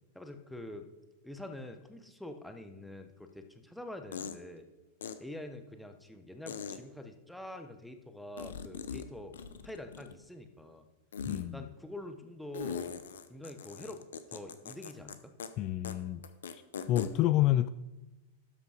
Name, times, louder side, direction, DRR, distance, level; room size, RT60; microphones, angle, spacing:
voice 1, 0.1-0.9 1.2-4.6 5.2-9.4 9.6-10.9 11.5-13.0 13.3-14.0 14.3-15.3, left 1 dB, ahead, 1.0 m, -45 dB
sound 1, 3.2-3.3 4.1-4.4 5.0-5.1 6.5-6.8 8.4-9.1 9.3-10.2 11.1-11.4 12.5-15.1 15.4-15.5 15.8-15.9 16.2-17.1, left 7 dB, 80° left, 0.7 m, -40 dB
voice 2, 11.3-11.7 15.6-16.2 16.5-16.6 16.9-17.7, left 14 dB, 45° left, 0.3 m, -28 dB
12.5 x 5.2 x 5.0 m
hypercardioid pair, 110°, 0 cm